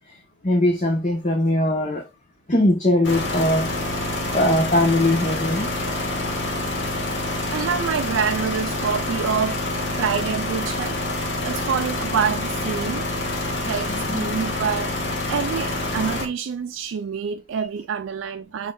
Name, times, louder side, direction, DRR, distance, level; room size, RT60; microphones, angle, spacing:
voice 1, 0.4-2.0 2.5-3.7 4.3-5.7 13.6-14.3 17.5-17.6, left 1 dB, 40° left, 0.9 m, -21 dB
sound 1, 3.0-16.3, left 2 dB, 65° left, 1.4 m, -27 dB
voice 2, 7.5-11.0 11.4-13.1 13.6-14.9 15.3-18.7, right 6 dB, 85° right, 0.4 m, -26 dB
6.2 x 3.3 x 2.3 m
head